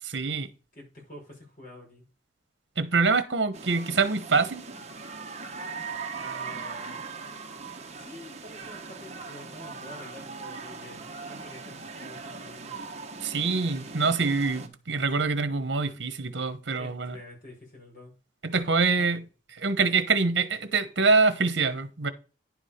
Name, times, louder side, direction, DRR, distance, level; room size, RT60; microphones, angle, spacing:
voice 1, 0.0-0.5 2.8-4.6 13.2-17.1 18.4-19.2 19.6-22.1, right 4 dB, 70° right, 1.2 m, -25 dB
voice 2, 0.7-2.1 6.2-7.0 8.0-12.8 16.8-18.1 18.9-19.1 19.7-19.9, left 1 dB, 50° left, 5.3 m, -47 dB
sound 1, 3.5-14.7, right 4 dB, 35° right, 1.2 m, -40 dB
10.5 x 4.9 x 5.1 m
head